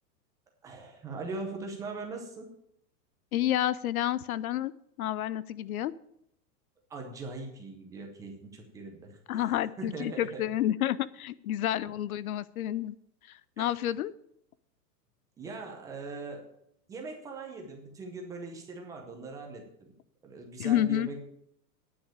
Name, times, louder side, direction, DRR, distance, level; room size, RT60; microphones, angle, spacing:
voice 1, 0.6-2.5 6.9-10.4 13.6-13.8 15.4-16.5 16.9-19.9 20.2-21.2, right 3 dB, 5° right, 2 dB, 0.6 m, -41 dB
voice 2, 3.3-4.7 5.0-5.9 9.3-13.0 13.3-14.1 20.6-21.1, left 12 dB, 60° left, 19 dB, 0.6 m, -29 dB
10.0 x 6.1 x 8.6 m, 0.73 s
supercardioid pair, 165°, 49 cm